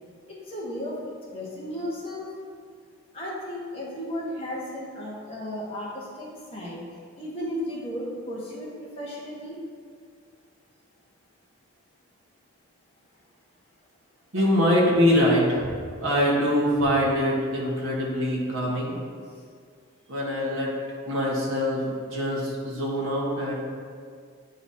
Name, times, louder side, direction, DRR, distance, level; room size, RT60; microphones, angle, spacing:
voice 1, 0.3-1.0 1.3-2.2 3.1-6.8 7.1-9.6, equal, 25° left, -6 dB, 1.3 m, -34 dB
voice 2, 14.3-15.7 16.0-19.0 20.1-20.7 21.1-23.5, equal, 75° right, -5 dB, 1.3 m, -23 dB
9.0 x 4.0 x 2.8 m, 2.1 s
head